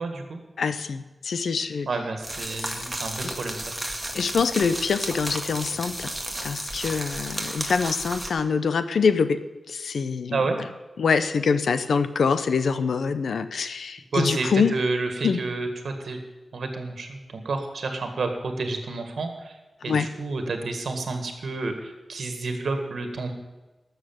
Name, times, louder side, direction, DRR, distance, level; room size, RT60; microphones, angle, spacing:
voice 1, 0.0-0.4 1.9-3.6 10.3-10.6 14.1-16.2 16.5-19.5 19.8-23.3, right 3 dB, 75° right, 6 dB, 1.9 m, -29 dB
voice 2, 0.6-1.9 3.2-3.3 4.1-6.1 6.4-9.4 9.7-10.4 11.0-14.7 15.2-15.4 19.9-20.1, left 5 dB, 90° left, 12 dB, 0.7 m, -24 dB
sound 1, 2.2-8.3, right 1 dB, 5° right, 1.8 m, -33 dB
13.0 x 7.0 x 8.9 m, 1.1 s
wide cardioid pair, 115°, 0 cm